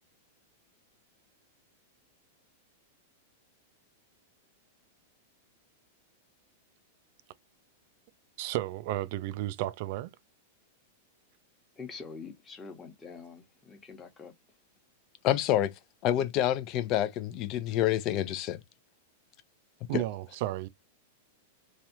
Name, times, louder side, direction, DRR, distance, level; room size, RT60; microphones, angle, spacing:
voice 1, 8.4-10.1 19.9-20.7, right 15 dB, 55° right, 0.3 m, -33 dB
voice 2, 11.8-14.3, left 5 dB, 20° left, 1.0 m, -45 dB
voice 3, 15.2-15.7 16.0-18.6 19.9-20.0, left 12 dB, 40° left, 0.6 m, -27 dB
3.3 x 2.4 x 2.8 m
figure-of-eight pair, 100°, 0 cm